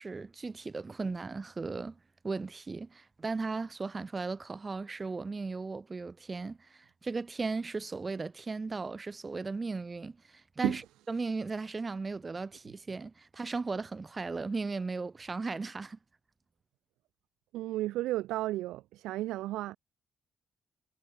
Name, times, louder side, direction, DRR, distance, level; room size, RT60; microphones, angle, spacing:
voice 1, 0.0-2.0 2.2-10.8 11.1-16.0, right 4 dB, 30° right, 1.2 m, -36 dB
voice 2, 17.5-19.8, right 16 dB, 65° right, 0.5 m, -33 dB
figure-of-eight pair, 40°, 0 cm